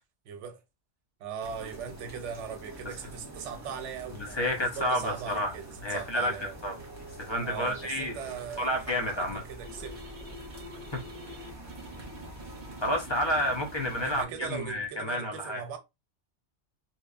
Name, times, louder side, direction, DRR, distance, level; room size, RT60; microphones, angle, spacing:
voice 1, 0.3-0.6 1.2-6.6 7.4-10.0 14.0-15.8, right 7 dB, 90° right, 0.9 m, -39 dB
sound 1, 1.4-14.2, right 1 dB, 25° right, 0.3 m, -46 dB
voice 2, 4.3-5.5 5.8-6.7 7.2-8.2 8.6-9.4 10.9-11.0 12.8-15.6, equal, 35° left, 0.5 m, -30 dB
sound 2, 9.6-14.9, equal, 45° right, 0.8 m, -47 dB
2.8 x 2.2 x 2.3 m
omnidirectional pair, 1.2 m